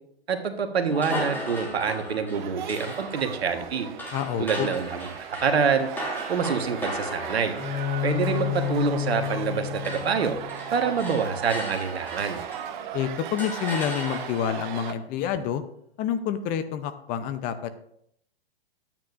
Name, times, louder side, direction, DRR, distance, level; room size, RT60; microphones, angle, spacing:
voice 1, 0.3-3.9 4.4-5.9 6.3-7.5 8.0-10.4 10.7-12.4, right 6 dB, 75° right, 6 dB, 1.4 m, -26 dB
sound 1, 0.9-9.5 9.8-12.9 13.4-14.6, equal, 5° left, 2.1 m, -37 dB
sound 2, 2.3-14.9, right 9 dB, 50° right, 0.9 m, -37 dB
voice 2, 4.1-4.7 12.9-15.6 16.0-17.7, left 9 dB, 25° left, 10 dB, 0.6 m, -28 dB
Bowed string instrument, 7.5-11.2, left 11 dB, 85° left, 2.4 m, -30 dB
12.5 x 8.9 x 2.5 m, 0.70 s
hypercardioid pair, 120°, 31 cm